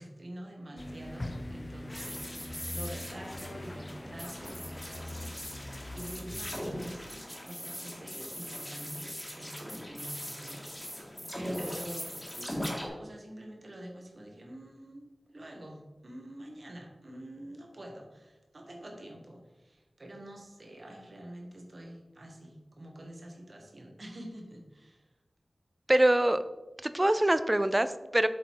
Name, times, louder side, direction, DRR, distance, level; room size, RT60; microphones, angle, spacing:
voice 1, 0.0-5.3 5.9-12.7 13.0-15.1 15.3-25.1, right 1 dB, 60° right, 1 dB, 1.7 m, -46 dB
sound 1, 0.7-9.0 9.4-9.5, right 1 dB, 85° right, 1.3 m, -52 dB
sound 2, 0.8-7.1, left 1 dB, 40° left, 0.5 m, -43 dB
sound 3, 1.9-12.9, equal, 15° left, 2.1 m, -40 dB
voice 2, 25.9-26.4 26.8-28.3, right 1 dB, 25° right, 12 dB, 0.5 m, -24 dB
7.9 x 4.0 x 4.7 m, 1.1 s
wide cardioid pair, 50°, 0 cm